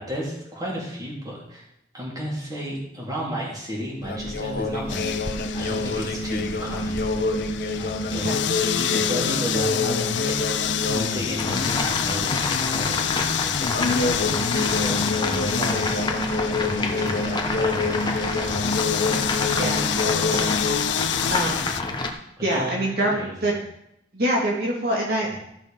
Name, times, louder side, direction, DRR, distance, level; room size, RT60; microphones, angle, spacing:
voice 1, 0.0-1.6 1.9-5.1 5.5-7.0 7.7-8.2 8.7-14.1 14.5-16.0 16.6-18.6 22.4-23.6 25.3-25.4, equal, 20° right, -4 dB, 3.6 m, -33 dB
sound 1, 4.0-11.1 11.4-11.8 13.7-20.8, left 2 dB, 60° left, 1.2 m, -27 dB
sound 2, 4.9-21.8, left 8 dB, 80° left, 0.5 m, -28 dB
sound 3, 11.4-22.1, left 2 dB, 25° left, 1.1 m, -29 dB
voice 2, 19.6-20.9 21.3-21.7 22.4-23.5 24.1-25.4, right 1 dB, 60° right, -3 dB, 2.2 m, -26 dB
14.5 x 6.2 x 5.3 m, 0.77 s
head